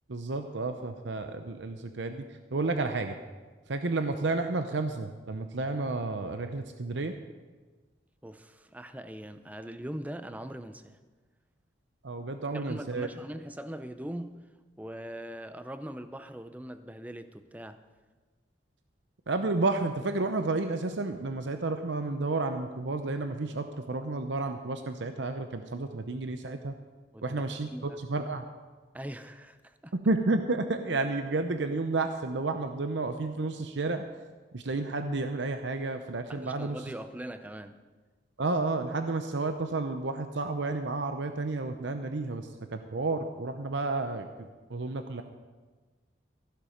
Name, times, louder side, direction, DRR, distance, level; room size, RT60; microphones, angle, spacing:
voice 1, 0.1-2.2 2.5-3.2 3.7-7.1 12.0-13.1 19.3-26.7 27.2-28.4 30.0-34.0 34.5-36.8 38.4-45.2, right 3 dB, 75° right, 0.7 m, -31 dB
voice 2, 8.2-11.0 12.5-14.5 14.8-17.9 27.1-28.0 28.9-29.9 36.3-37.8, right 1 dB, 10° right, 0.5 m, -41 dB
15.0 x 11.5 x 5.1 m
head